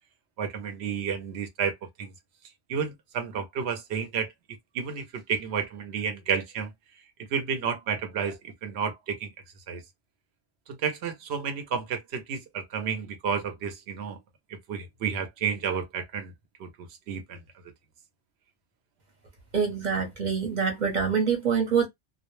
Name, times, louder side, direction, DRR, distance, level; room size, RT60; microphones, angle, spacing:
voice 1, 0.4-2.1 2.7-4.3 4.7-6.7 7.3-9.3 9.7-9.8 10.7-14.2 14.7-16.3 16.6-17.4, right 6 dB, 70° right, 0.9 m, -31 dB
voice 2, 19.5-21.9, right 6 dB, 45° right, 0.9 m, -25 dB
2.2 x 2.1 x 3.0 m
omnidirectional pair, 1.2 m